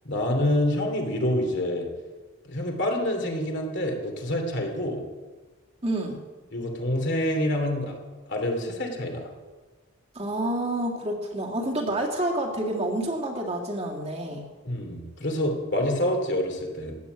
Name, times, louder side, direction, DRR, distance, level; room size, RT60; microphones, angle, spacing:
voice 1, 0.0-1.9 2.4-5.0 6.5-8.0 8.3-9.3 14.6-16.9, left 1 dB, 50° left, 3 dB, 2.9 m, -27 dB
voice 2, 5.8-6.2 10.1-14.4, right 1 dB, 30° right, -1 dB, 2.2 m, -28 dB
15.5 x 10.5 x 8.1 m, 1.3 s
head